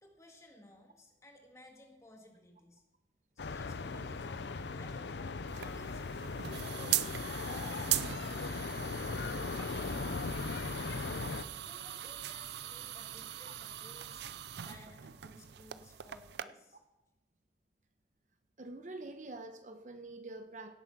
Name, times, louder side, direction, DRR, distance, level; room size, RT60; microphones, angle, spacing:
voice 1, 0.0-2.8 3.4-6.2 6.5-7.0 7.4-10.2 10.5-14.2 14.5-16.8, left 1 dB, 15° left, 2 dB, 1.9 m, -58 dB
sound 1, 3.4-11.4, left 4 dB, 80° left, 0.6 m, -38 dB
sound 2, 5.5-16.4, right 12 dB, 75° right, 0.5 m, -40 dB
voice 2, 18.6-20.8, right 2 dB, 45° right, 7 dB, 0.9 m, -46 dB
17.0 x 7.8 x 6.0 m, 0.96 s
head